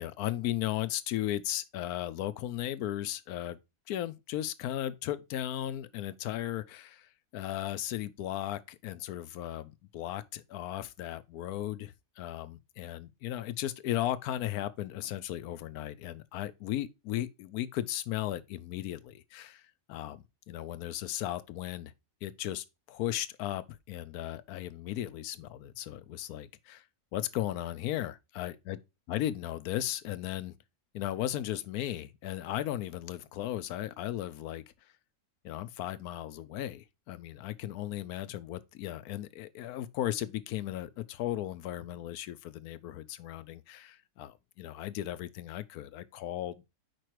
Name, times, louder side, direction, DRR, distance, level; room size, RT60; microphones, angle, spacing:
voice 1, 0.0-3.6 3.9-21.9 22.2-26.8 27.1-28.8 29.1-30.5 30.9-34.6 35.4-46.7, left 13 dB, 75° left, 1.1 m, -36 dB
5.0 x 4.5 x 4.6 m
omnidirectional pair, 1.6 m